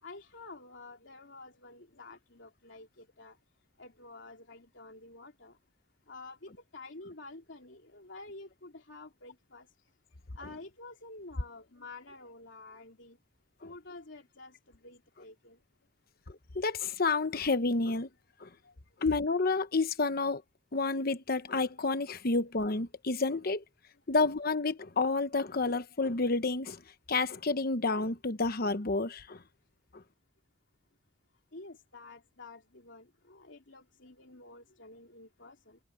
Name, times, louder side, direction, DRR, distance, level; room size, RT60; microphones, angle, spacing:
voice 1, 0.0-3.4 3.8-5.6 6.1-9.7 10.4-13.2 13.6-15.6 18.6-18.7 31.5-35.8, left 3 dB, 80° left, 3.0 m, -50 dB
voice 2, 16.3-18.1 18.4-18.5 19.0-20.4 20.7-23.6 24.1-26.8 27.1-29.4 29.9-30.0, left 3 dB, 55° left, 1.0 m, -30 dB
head